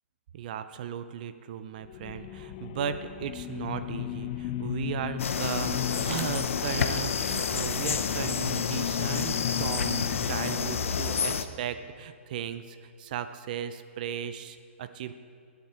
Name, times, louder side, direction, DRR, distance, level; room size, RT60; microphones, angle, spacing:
voice 1, 0.3-15.1, right 9 dB, 40° right, 11 dB, 0.5 m, -36 dB
sound 1, 1.8-11.0, left 13 dB, 30° left, 0.4 m, -36 dB
sound 2, 5.2-11.4, left 6 dB, 85° left, 0.8 m, -29 dB
21.0 x 8.1 x 4.4 m, 2.4 s
hypercardioid pair, 165°, 7 cm